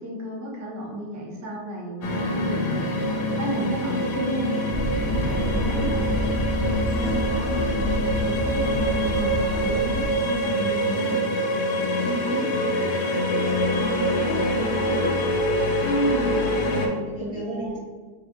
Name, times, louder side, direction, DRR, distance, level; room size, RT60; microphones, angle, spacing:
voice 1, 0.0-2.8 3.3-4.6 4.9-6.1 6.9-11.2 12.0-12.5 12.8-13.4 13.7-14.3 15.8-17.8, equal, 20° right, -3 dB, 0.5 m, -32 dB
sound 1, 2.0-16.9, equal, 75° left, 1.2 m, -25 dB
sound 2, 4.7-10.1, left 1 dB, 55° left, 0.8 m, -28 dB
voice 2, 5.4-6.1 10.9-11.2 11.9-12.7 13.1-15.1 16.5-17.8, right 1 dB, 60° right, -3 dB, 0.7 m, -35 dB
4.2 x 2.6 x 3.9 m, 1.5 s
omnidirectional pair, 1.9 m